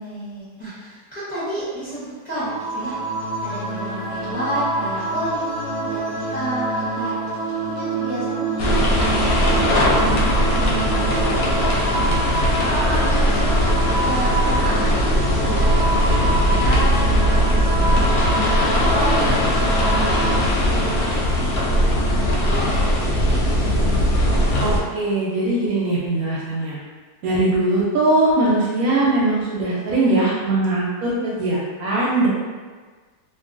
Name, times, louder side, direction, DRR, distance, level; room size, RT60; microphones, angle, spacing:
voice 1, 0.0-3.0 3.4-17.5 18.0-23.5, right 1 dB, 40° left, -13 dB, 0.7 m, -31 dB
sound 1, 2.3-20.4, right 2 dB, 55° right, 0.6 m, -27 dB
sound 2, 8.6-24.8, equal, 70° left, 0.9 m, -19 dB
voice 2, 24.6-26.8 27.2-32.3, right 2 dB, 70° right, -5 dB, 0.9 m, -20 dB
2.7 x 2.2 x 2.4 m, 1.4 s
omnidirectional pair, 1.7 m